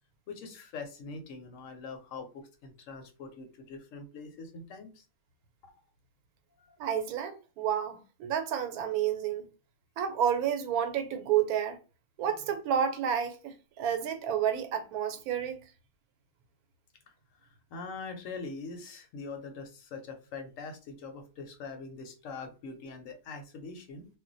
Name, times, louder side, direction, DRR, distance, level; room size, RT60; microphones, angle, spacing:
voice 1, 0.3-5.0 5.6-5.7 6.6-6.8 17.4-24.1, left 4 dB, 70° left, 0.9 m, -43 dB
voice 2, 6.8-9.5 10.0-11.8 12.2-15.6, right 9 dB, 85° right, 1.1 m, -30 dB
2.4 x 2.2 x 3.8 m
omnidirectional pair, 1.5 m